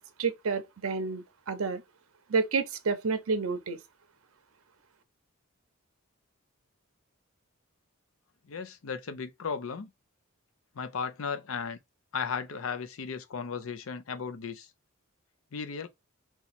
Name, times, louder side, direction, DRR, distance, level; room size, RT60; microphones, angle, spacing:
voice 1, 0.2-1.8 2.3-3.8, right 4 dB, 75° right, 0.6 m, -29 dB
voice 2, 8.5-9.9 10.8-11.8 12.1-14.7 15.5-15.9, left 6 dB, 70° left, 0.5 m, -35 dB
2.9 x 2.3 x 4.1 m
head